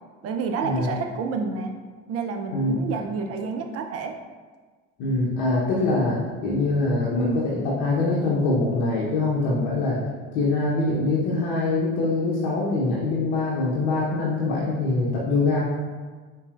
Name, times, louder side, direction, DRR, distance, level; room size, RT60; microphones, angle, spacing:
voice 1, 0.2-1.7 2.1-4.1, right 5 dB, 45° right, 4 dB, 0.5 m, -29 dB
voice 2, 5.0-10.0 10.3-15.6, left 2 dB, 70° left, -6 dB, 0.8 m, -23 dB
4.0 x 2.7 x 2.4 m, 1.4 s
hypercardioid pair, 55°, 36 cm